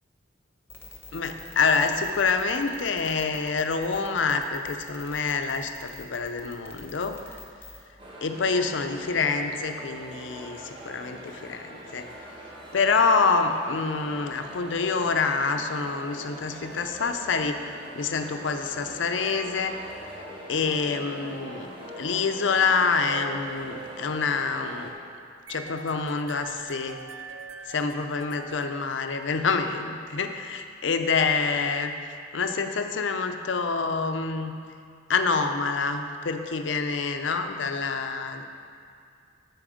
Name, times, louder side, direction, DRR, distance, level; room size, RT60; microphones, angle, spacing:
sound 1, 0.7-7.8, left 3 dB, 10° left, 1.0 m, -45 dB
voice 1, 1.1-7.2 8.2-12.1 12.7-17.6 17.9-19.8 20.5-21.7 22.0-24.9 25.5-27.0 27.7-31.9 32.3-34.5 35.1-38.4, left 4 dB, 70° left, 6 dB, 0.6 m, -26 dB
sound 2, 8.0-24.9, right 1 dB, 30° right, 1.3 m, -42 dB
sound 3, 25.5-29.6, right 5 dB, 80° right, 0.5 m, -44 dB
12.5 x 4.6 x 5.0 m, 2.3 s
head